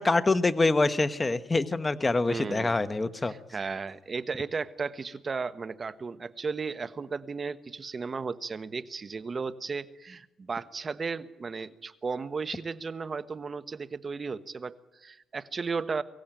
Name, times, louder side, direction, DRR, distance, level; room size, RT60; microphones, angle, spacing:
voice 1, 0.0-3.3, left 3 dB, 20° left, 11 dB, 1.2 m, -25 dB
voice 2, 2.2-2.8 3.2-16.0, right 5 dB, 35° right, 13 dB, 1.2 m, -35 dB
24.0 x 16.0 x 9.0 m, 0.93 s
cardioid pair, 90°, 0 cm